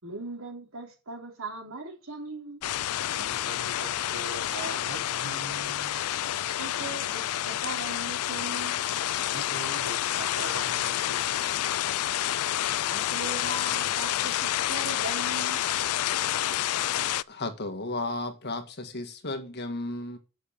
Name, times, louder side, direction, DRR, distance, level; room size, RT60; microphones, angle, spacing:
voice 1, 0.0-2.7 6.6-8.9 12.9-14.4 14.7-15.7, right 2 dB, 65° right, 3.6 m, -39 dB
sound 1, 2.6-17.2, left 12 dB, 80° left, 0.4 m, -29 dB
voice 2, 3.1-6.0 9.3-11.8, right 2 dB, 85° right, 1.6 m, -42 dB
voice 3, 17.3-20.2, left 2 dB, 50° left, 1.7 m, -34 dB
8.0 x 6.6 x 7.4 m
head